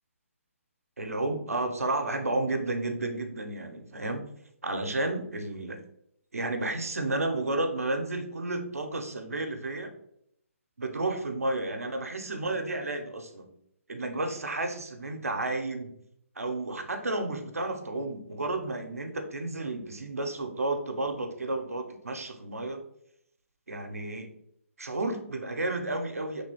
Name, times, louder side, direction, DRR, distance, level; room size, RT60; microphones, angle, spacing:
voice 1, 1.0-4.2 4.6-5.8 6.3-9.9 10.8-13.5 13.9-15.9 16.4-22.8 23.7-24.3 24.8-26.4, right 2 dB, 85° right, 5 dB, 0.6 m, -32 dB
3.3 x 2.9 x 2.8 m, 0.73 s
figure-of-eight pair, 140°, 8 cm